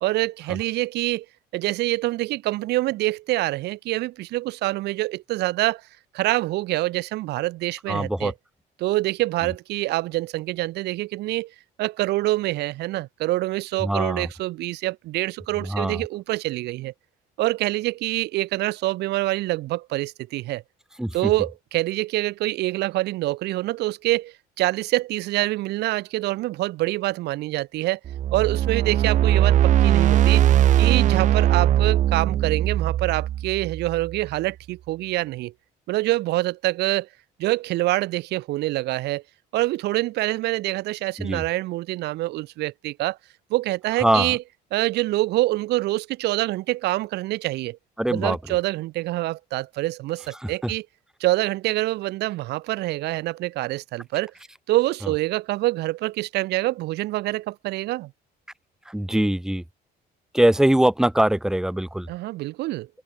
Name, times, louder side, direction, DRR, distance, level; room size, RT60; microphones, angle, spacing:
voice 1, 0.0-1.3 1.5-5.8 6.1-8.3 8.8-11.5 11.8-16.9 17.4-20.6 21.1-28.0 28.3-30.5 30.8-35.5 35.9-37.1 37.4-39.2 39.5-43.2 43.5-44.4 44.7-47.8 48.1-50.9 51.2-54.3 54.7-58.1 62.1-62.9, right 18 dB, 80° right, 1.7 m, -26 dB
voice 2, 7.9-8.3 13.8-14.3 15.6-16.0 21.0-21.3 41.2-41.4 44.0-44.4 48.0-48.4 50.4-50.7 58.9-59.6 60.3-62.1, right 1 dB, 5° right, 1.7 m, -22 dB
sound 1, 28.1-34.3, right 12 dB, 45° right, 0.5 m, -20 dB
cardioid pair, 110°, 17 cm